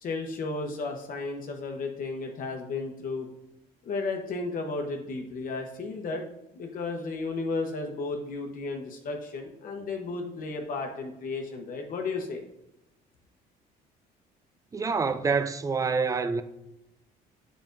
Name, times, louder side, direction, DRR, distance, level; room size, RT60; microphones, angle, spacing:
voice 1, 0.0-3.3 3.8-6.2 6.5-12.4, left 3 dB, 55° left, 1.0 m, -33 dB
voice 2, 14.7-16.4, right 4 dB, 20° right, 0.4 m, -26 dB
7.1 x 5.1 x 2.6 m
cardioid pair, 110°, 17 cm